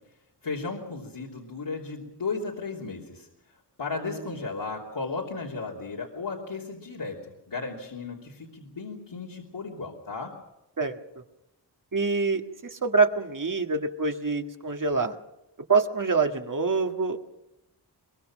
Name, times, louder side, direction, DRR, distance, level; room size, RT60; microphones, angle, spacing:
voice 1, 0.4-3.3 3.8-10.4, left 4 dB, 80° left, -4 dB, 3.3 m, -35 dB
voice 2, 4.0-4.4 10.8-11.0 11.9-15.1 15.7-17.2, right 4 dB, 50° right, 5 dB, 1.8 m, -26 dB
23.0 x 22.5 x 6.2 m, 0.89 s
wide cardioid pair, 85°, 42 cm